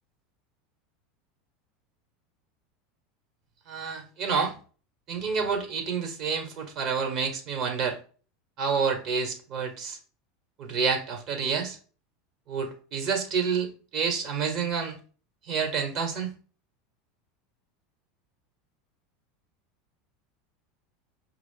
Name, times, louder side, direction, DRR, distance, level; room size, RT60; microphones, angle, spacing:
voice 1, 3.7-4.5 5.1-8.0 8.6-10.0 10.6-11.8 12.5-15.0 15.5-16.3, right 5 dB, 50° right, 1.3 m, -28 dB
5.2 x 2.4 x 3.8 m
hypercardioid pair, 90°, 0 cm